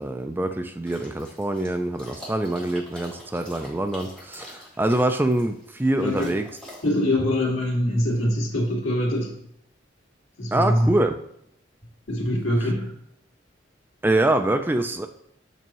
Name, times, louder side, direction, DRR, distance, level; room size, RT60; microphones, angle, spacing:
voice 1, 0.0-6.5 10.5-11.2 14.0-15.1, right 1 dB, 10° right, 7 dB, 0.3 m, -24 dB
sound 1, 0.9-7.0, left 1 dB, 5° left, 2.0 m, -44 dB
voice 2, 6.8-9.4 10.4-10.9 12.1-12.9, left 1 dB, 85° left, -2 dB, 2.1 m, -23 dB
6.8 x 6.4 x 3.0 m, 0.74 s
head